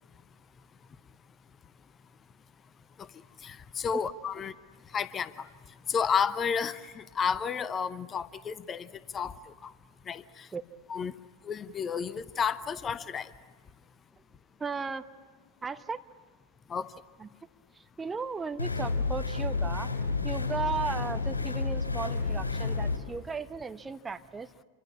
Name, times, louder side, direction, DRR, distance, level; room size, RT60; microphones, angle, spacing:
voice 1, 3.4-4.5 4.9-5.5 5.9-8.9 9.1-9.3 10.1-10.2 10.9-11.1 11.5-13.3 16.7-16.9, left 6 dB, 20° left, 16 dB, 0.8 m, -31 dB
voice 2, 14.6-15.1 15.6-16.0 17.2-17.3 18.0-19.9 20.2-24.5, right 4 dB, 15° right, 9 dB, 0.9 m, -35 dB
sound 1, 18.6-23.0, left 4 dB, 75° left, 3.4 m, -30 dB
28.0 x 24.0 x 8.7 m, 1.3 s
figure-of-eight pair, 90°, 0 cm